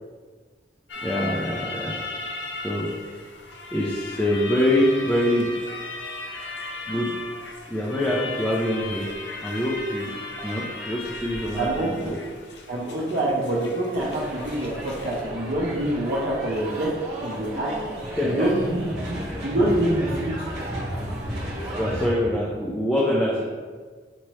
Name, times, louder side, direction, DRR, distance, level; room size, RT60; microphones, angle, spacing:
sound 1, 0.9-15.2, left 3 dB, 85° left, 0.6 m, -36 dB
voice 1, 1.0-2.0 2.6-2.9 3.7-5.6 6.9-7.1 7.7-9.1 9.4-10.1 10.4-12.2 18.0-18.5 19.3-19.5 21.8-23.4, left 1 dB, 5° left, -5 dB, 0.5 m, -25 dB
voice 2, 11.6-12.2 12.7-16.9 17.2-17.7 18.2-20.3, right 1 dB, 60° right, -6 dB, 0.7 m, -26 dB
sound 2, 14.0-22.1, equal, 40° right, 1.4 m, -33 dB
6.0 x 2.8 x 3.1 m, 1.5 s
head